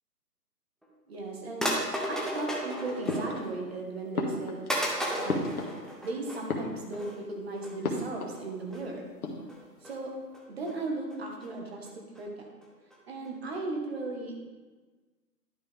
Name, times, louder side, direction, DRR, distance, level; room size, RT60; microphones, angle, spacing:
sound 1, 0.8-0.9 1.6-3.6 4.0-4.1 4.7-6.5 6.9-7.2 7.5-7.7 8.3-8.4 8.7-8.8 9.5-9.9 10.3-10.7 11.1-11.5 11.8-11.9 12.1-12.2 12.6-12.7 12.9-13.0 13.2-13.3 13.5-13.6, equal, ahead, 0.4 m, -34 dB
voice 1, 1.1-1.7 2.1-4.7 5.1-5.4 6.0-9.1 9.8-10.1 10.5-11.9 12.2-12.5 13.1-14.5, right 2 dB, 40° right, 1 dB, 1.5 m, -36 dB
sound 2, 3.1-3.8 4.1-6.1 6.4-7.2 7.8-8.4 8.7-8.8 9.1-9.8, left 2 dB, 65° left, 1.5 m, -34 dB
11.0 x 5.3 x 3.4 m, 1.3 s
hypercardioid pair, 165°, 48 cm